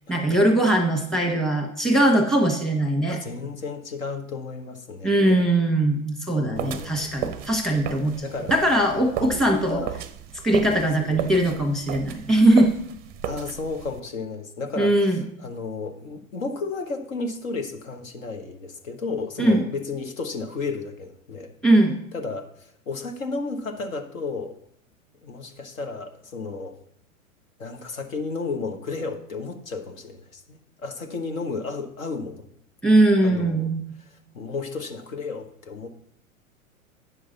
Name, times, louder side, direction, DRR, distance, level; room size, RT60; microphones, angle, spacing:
voice 1, 0.1-3.2 5.0-9.8 10.4-12.7 14.8-15.2 19.4-19.6 21.6-22.0 32.8-33.8, right 1 dB, ahead, 3 dB, 1.3 m, -20 dB
voice 2, 3.1-5.5 6.4-7.1 8.2-8.6 9.0-9.9 11.0-11.3 13.2-21.5 22.1-24.6 25.2-26.7 27.6-32.4 33.2-33.7 34.1-35.9, left 4 dB, 70° left, 5 dB, 1.3 m, -33 dB
sound 1, 6.6-14.0, right 9 dB, 20° right, 0.5 m, -35 dB
9.3 x 6.3 x 4.0 m, 0.70 s
figure-of-eight pair, 100°, 42 cm